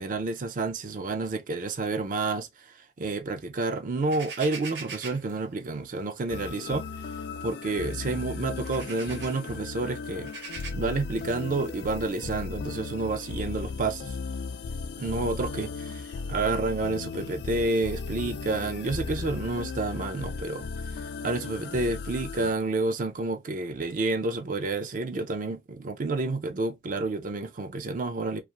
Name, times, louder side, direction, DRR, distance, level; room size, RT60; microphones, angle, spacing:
voice 1, 0.0-2.5 3.0-6.9 7.4-10.3 10.7-14.2 15.0-20.7 21.2-28.4, right 3 dB, 50° right, 0.4 m, -29 dB
sound 1, 4.1-5.3 6.4-6.6 7.1-7.2 7.9-8.0 8.5-9.4 10.1-10.7, right 5 dB, 85° right, 0.8 m, -41 dB
sound 2, 6.3-22.5, left 4 dB, 70° left, 0.3 m, -36 dB
2.4 x 2.4 x 2.9 m
head